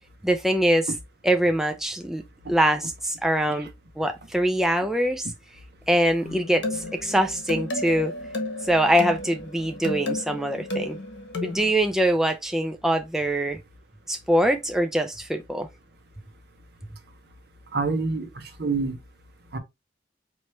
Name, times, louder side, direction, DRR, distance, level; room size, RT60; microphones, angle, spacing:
voice 1, 0.2-0.9 1.2-2.2 2.5-3.7 4.0-5.3 5.9-8.1 8.6-11.0 11.4-13.6 14.1-15.7, right 1 dB, ahead, 0.4 m, -23 dB
sound 1, 6.2-11.7, left 1 dB, 70° left, 1.1 m, -33 dB
voice 2, 17.7-19.0 19.5-19.6, right 4 dB, 60° right, 0.9 m, -27 dB
4.3 x 3.1 x 3.1 m
head